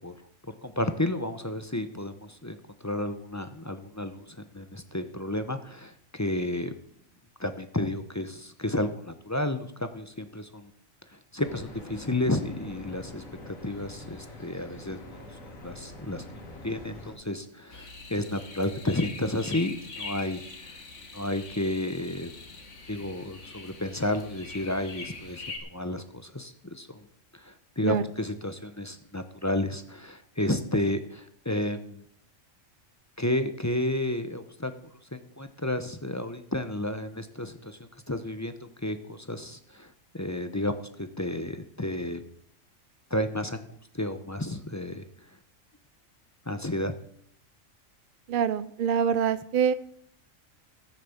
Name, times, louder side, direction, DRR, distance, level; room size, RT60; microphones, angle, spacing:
voice 1, 0.6-4.3 4.5-6.7 7.4-10.7 11.1-16.2 16.6-20.8 21.1-22.3 22.9-27.0 27.3-32.0 33.2-34.7 35.1-37.8 38.1-38.5 38.8-42.2 43.1-43.6 43.9-45.1 46.5-46.9, left 1 dB, 15° left, 9 dB, 0.6 m, -32 dB
sound 1, 11.4-17.1, left 1 dB, 85° left, 4.0 m, -45 dB
sound 2, 17.7-25.6, left 3 dB, 65° left, 2.1 m, -43 dB
voice 2, 48.3-49.7, right 8 dB, 60° right, 14 dB, 0.6 m, -25 dB
14.5 x 6.7 x 7.2 m, 0.69 s
omnidirectional pair, 1.4 m